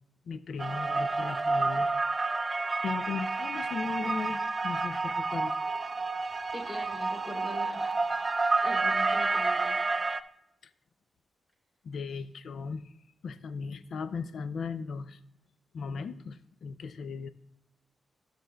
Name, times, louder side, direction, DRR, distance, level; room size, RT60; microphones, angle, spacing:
voice 1, 0.3-1.9 2.3-2.4 2.8-5.6 11.8-12.9 13.2-15.2 15.7-17.3, left 5 dB, 75° left, 14 dB, 0.4 m, -37 dB
sound 1, 0.6-10.2, right 3 dB, 40° right, 0.3 m, -29 dB
voice 2, 6.5-8.2 8.6-9.9, equal, 35° left, -1 dB, 3.2 m, -43 dB
13.0 x 6.3 x 2.3 m, 0.81 s
cardioid pair, 65°, 0 cm